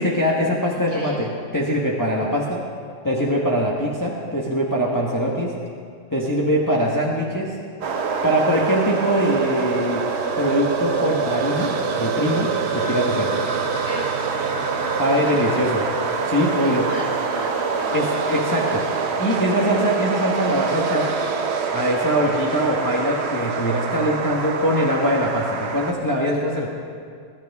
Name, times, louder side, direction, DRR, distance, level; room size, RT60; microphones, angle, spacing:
voice 1, 0.0-2.6 3.0-5.5 6.1-7.5 8.2-10.0 10.4-11.7 12.0-12.5 12.7-13.3 15.0-15.8 16.2-16.8 17.9-18.9 19.2-21.1 21.7-26.7, equal, 15° left, -4 dB, 1.3 m, -22 dB
voice 2, 0.7-1.3 13.8-15.6 16.6-18.1, equal, 40° right, -6 dB, 4.4 m, -36 dB
sound 1, 7.8-25.9, right 5 dB, 60° right, 1.0 m, -25 dB
21.5 x 12.0 x 3.6 m, 2.2 s
omnidirectional pair, 1.3 m